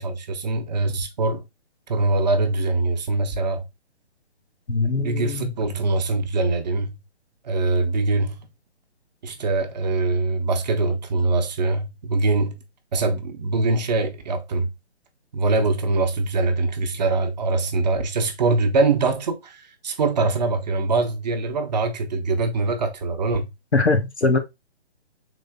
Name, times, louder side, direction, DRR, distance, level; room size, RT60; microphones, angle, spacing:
voice 1, 0.0-1.4 1.9-3.6 5.0-7.0 7.4-8.4 9.2-12.6 12.9-14.7 15.3-23.5, right 3 dB, 40° right, 0.8 m, -23 dB
voice 2, 4.7-5.5 23.7-24.4, left 3 dB, 85° left, 1.1 m, -21 dB
3.8 x 2.7 x 3.5 m
figure-of-eight pair, 135°, 32 cm